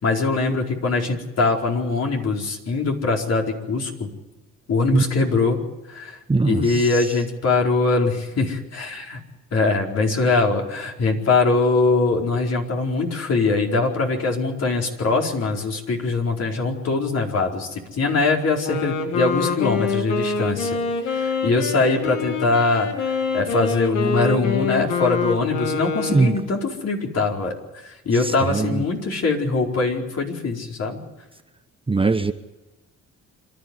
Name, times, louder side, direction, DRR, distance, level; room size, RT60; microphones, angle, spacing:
voice 1, 0.0-4.1 4.7-5.6 5.9-6.2 6.4-9.2 9.5-22.9 23.3-31.0, left 3 dB, 55° left, 4.6 m, -22 dB
voice 2, 6.3-6.6 26.1-26.4 28.5-28.8 31.9-32.3, right 3 dB, 20° right, 1.0 m, -19 dB
Wind instrument woodwind instrument, 18.5-26.5, left 4 dB, 90° left, 2.3 m, -25 dB
27.0 x 12.5 x 9.8 m
cardioid pair, 90°, 30 cm